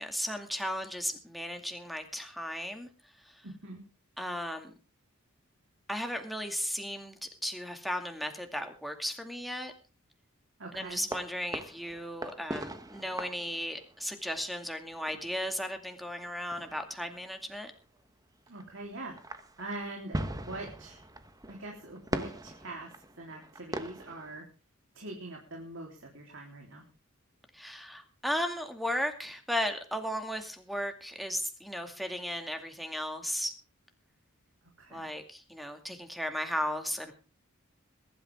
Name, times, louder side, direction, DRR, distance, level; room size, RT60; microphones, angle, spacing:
voice 1, 0.0-2.9 3.2-3.4 4.2-4.7 5.9-9.7 10.7-17.7 27.5-33.5 34.9-37.1, equal, ahead, 5 dB, 2.3 m, -35 dB
voice 2, 3.4-3.8 10.6-11.0 18.5-19.2 19.6-21.0 21.5-24.5 24.9-26.8 34.8-35.1, right 2 dB, 65° right, 0 dB, 3.6 m, -43 dB
sound 1, 10.9-14.4 14.9-18.0 18.5-18.6 18.9-24.4, right 1 dB, 15° right, 1.2 m, -41 dB
21.5 x 12.0 x 3.6 m, 0.33 s
head